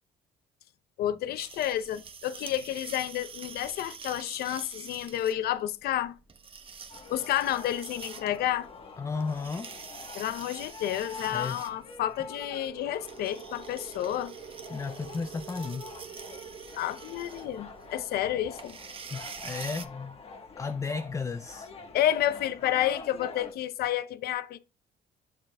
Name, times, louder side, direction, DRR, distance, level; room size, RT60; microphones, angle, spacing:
voice 1, 1.0-6.1 7.1-8.7 10.1-14.3 16.8-18.8 21.9-24.6, left 12 dB, 70° left, 0.6 m, -30 dB
sound 1, 1.4-19.9, right 6 dB, 30° right, 0.9 m, -47 dB
sound 2, 6.9-23.5, left 4 dB, 35° left, 1.3 m, -46 dB
voice 2, 9.0-9.7 11.3-11.6 14.7-15.9 19.1-20.2 20.6-21.7, left 4 dB, 20° left, 0.4 m, -34 dB
sound 3, 12.3-20.6, right 9 dB, 60° right, 1.0 m, -48 dB
7.6 x 6.7 x 2.2 m
cardioid pair, 110°, 17 cm